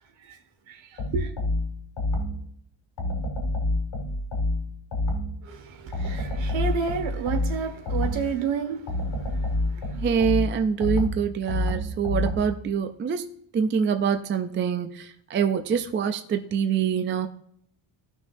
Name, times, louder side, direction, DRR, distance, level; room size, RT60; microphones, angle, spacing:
voice 1, 0.7-1.3 5.4-10.0, right 6 dB, 65° right, 1.6 m, -31 dB
sound 1, 1.0-2.5 3.0-5.5 5.9-8.4 8.9-12.6, left 1 dB, 60° left, 3.7 m, -28 dB
voice 2, 10.0-13.3 13.5-17.3, right 7 dB, 25° right, 0.3 m, -25 dB
16.5 x 6.2 x 2.6 m
cardioid pair, 175°, 49 cm